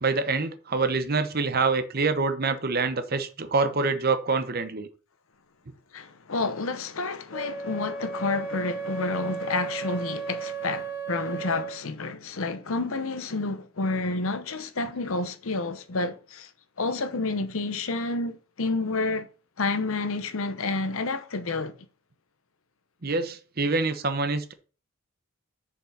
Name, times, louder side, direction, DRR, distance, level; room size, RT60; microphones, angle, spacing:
voice 1, 0.0-4.9 23.0-24.5, right 4 dB, 45° right, 0.9 m, -26 dB
voice 2, 5.9-16.5 16.8-19.3 19.6-21.7, left 3 dB, 70° left, 0.8 m, -29 dB
Wind instrument woodwind instrument, 7.3-11.8, right 5 dB, 10° right, 2.9 m, -35 dB
6.7 x 5.5 x 5.0 m
head